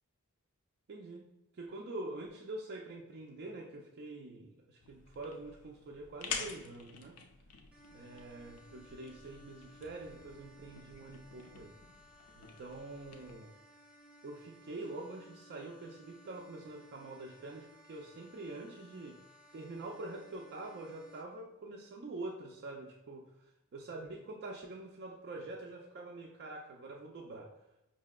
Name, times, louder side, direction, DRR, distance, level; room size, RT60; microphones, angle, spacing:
voice 1, 0.9-1.3 1.5-7.2 7.9-11.8 12.3-13.5 14.2-19.2 19.5-27.5, right 2 dB, 45° right, 0 dB, 0.3 m, -45 dB
sound 1, 4.8-13.4, left 6 dB, 85° left, 0.5 m, -48 dB
sound 2, 7.7-21.2, equal, 5° right, 0.6 m, -59 dB
5.6 x 2.7 x 2.2 m, 0.96 s
head